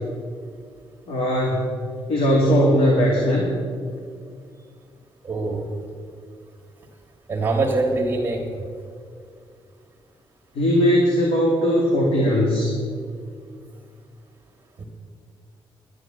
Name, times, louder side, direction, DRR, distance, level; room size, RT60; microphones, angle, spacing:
voice 1, 1.1-1.7 2.1-3.5 10.6-12.7, equal, 85° left, -2 dB, 2.2 m, -19 dB
voice 2, 5.2-5.6 7.3-8.4 14.8-14.9, right 3 dB, 20° right, -1 dB, 1.5 m, -23 dB
11.0 x 9.7 x 7.6 m, 2.2 s
wide cardioid pair, 160°, 10 cm